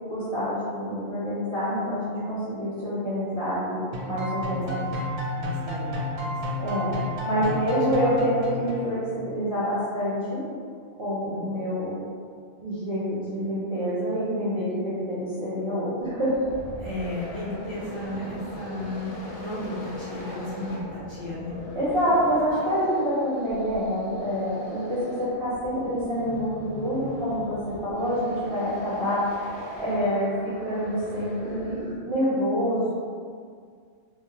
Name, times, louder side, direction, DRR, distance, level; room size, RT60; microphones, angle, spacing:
voice 1, 0.0-4.8 6.6-6.9 7.2-10.4 11.0-11.9 12.6-16.4 21.8-29.3 29.8-33.0, equal, 40° right, -12 dB, 0.4 m, -27 dB
sound 1, 3.9-9.1, left 1 dB, 75° right, 0.8 m, -31 dB
voice 2, 4.8-6.3 7.3-7.6 11.3-11.4 16.8-21.6, left 1 dB, 35° left, -12 dB, 0.5 m, -34 dB
sound 2, 16.0-32.1, left 1 dB, 65° left, 0.8 m, -40 dB
2.2 x 2.0 x 2.8 m, 2.1 s
omnidirectional pair, 1.2 m